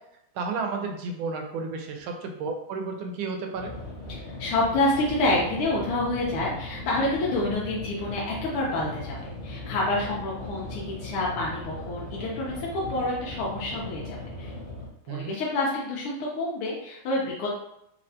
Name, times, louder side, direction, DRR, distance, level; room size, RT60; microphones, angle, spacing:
voice 1, 0.3-3.7 15.1-15.3, right 4 dB, 75° right, 3 dB, 1.4 m, -32 dB
sound 1, 3.5-14.9, left 2 dB, 55° left, 0.5 m, -38 dB
voice 2, 4.1-14.5 15.0-17.5, left 2 dB, 85° left, -4 dB, 1.7 m, -28 dB
4.3 x 2.8 x 2.7 m, 0.81 s
omnidirectional pair, 2.4 m